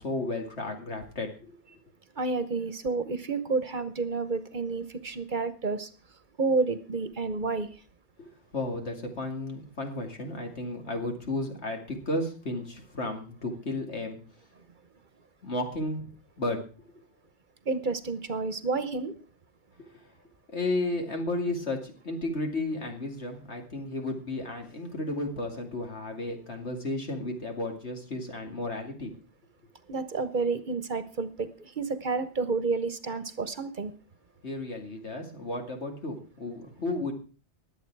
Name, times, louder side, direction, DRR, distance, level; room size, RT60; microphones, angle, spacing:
voice 1, 0.0-1.6 8.2-14.2 15.4-16.1 16.4-16.6 19.8-20.0 20.5-29.1 34.4-37.1, left 2 dB, 80° left, 3 dB, 2.7 m, -33 dB
voice 2, 2.2-5.9 6.4-7.7 17.7-19.1 29.9-33.9, right 4 dB, 50° right, 13 dB, 1.1 m, -30 dB
20.5 x 8.2 x 4.7 m, 0.37 s
omnidirectional pair, 1.1 m